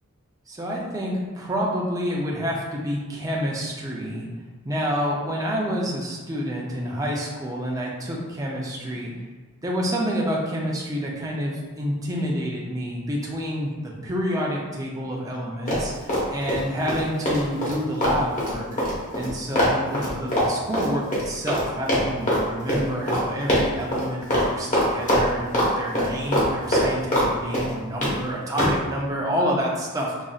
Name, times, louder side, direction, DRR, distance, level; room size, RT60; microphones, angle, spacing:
voice 1, 0.5-4.3 4.6-9.1 9.6-18.8 19.1-30.2, equal, 15° right, -3 dB, 0.5 m, -28 dB
Run, 15.7-16.6 16.9-21.6 21.9-22.4 22.7-22.8 23.1-23.2 23.5-24.0 24.3-24.5 24.7-25.7 26.0-27.3 27.5-28.1 28.6-28.8, equal, 35° left, 1.0 m, -22 dB
5.1 x 2.6 x 2.4 m, 1.3 s
head